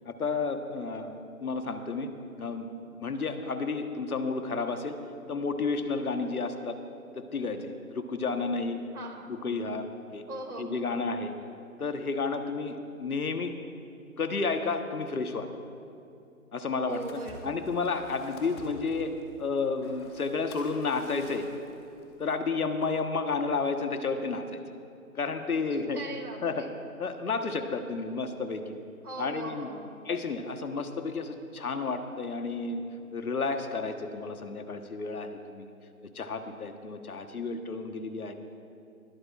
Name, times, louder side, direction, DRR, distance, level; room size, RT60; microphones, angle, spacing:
voice 1, 0.1-2.1 2.4-2.7 3.0-5.0 5.3-6.8 7.1-8.8 9.3-9.9 10.1-10.2 10.6-11.3 11.8-13.5 14.2-15.5 16.5-19.1 19.4-21.4 22.2-24.6 25.1-26.0 26.4-26.7 27.0-28.7 29.2-29.7 30.0-32.8 33.1-35.7 36.1-38.3, left 4 dB, 75° left, 7 dB, 1.3 m, -31 dB
voice 2, 8.9-9.3 10.3-11.1 16.8-17.6 25.9-26.8 29.0-30.0, right 2 dB, 85° right, 3 dB, 2.4 m, -40 dB
sound 1, 16.9-23.0, left 2 dB, 15° left, 1.2 m, -50 dB
21.0 x 12.5 x 2.4 m, 2.6 s
figure-of-eight pair, 145°, 44 cm